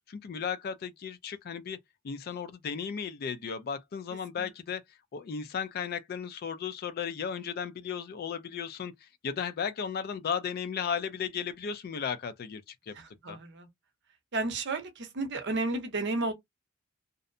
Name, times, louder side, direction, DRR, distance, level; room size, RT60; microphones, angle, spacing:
voice 1, 0.1-1.8 2.0-12.9 13.3-13.4, left 7 dB, 45° left, 0.3 m, -35 dB
voice 2, 12.9-13.7 14.3-16.3, right 2 dB, 55° right, 0.7 m, -32 dB
2.6 x 2.0 x 2.5 m
head